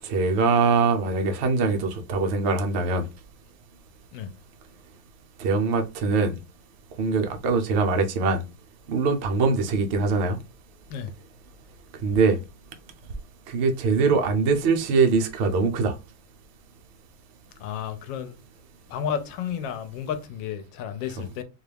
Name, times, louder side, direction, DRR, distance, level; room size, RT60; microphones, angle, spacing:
voice 1, 0.0-3.1 5.4-6.4 7.0-8.4 8.9-10.4 12.0-12.4 13.5-15.9, right 4 dB, 85° right, 0.5 m, -22 dB
voice 2, 17.6-18.3 18.9-21.4, left 8 dB, 80° left, 1.3 m, -32 dB
4.1 x 2.4 x 3.3 m
omnidirectional pair, 2.1 m